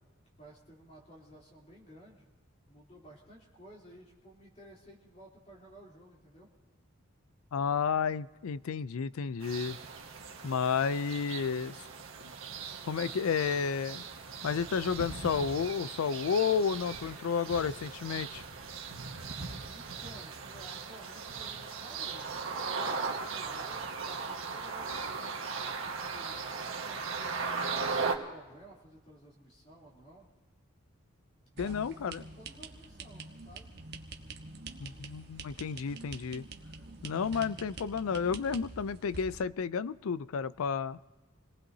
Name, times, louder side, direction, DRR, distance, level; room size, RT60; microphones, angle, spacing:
voice 1, 0.4-2.3 2.7-6.5 19.7-27.8 28.1-30.3 31.5-33.7, right 1 dB, 30° left, -4 dB, 3.3 m, -54 dB
voice 2, 7.5-9.8 10.4-11.7 12.8-14.0 14.4-18.4 31.6-32.2 34.8-36.4 37.0-41.0, left 6 dB, 80° left, 16 dB, 0.4 m, -31 dB
sound 1, 9.4-28.2, right 5 dB, 70° right, 1.5 m, -38 dB
sound 2, 31.6-39.4, right 3 dB, 50° right, 1.1 m, -46 dB
27.5 x 19.0 x 2.8 m, 1.2 s
head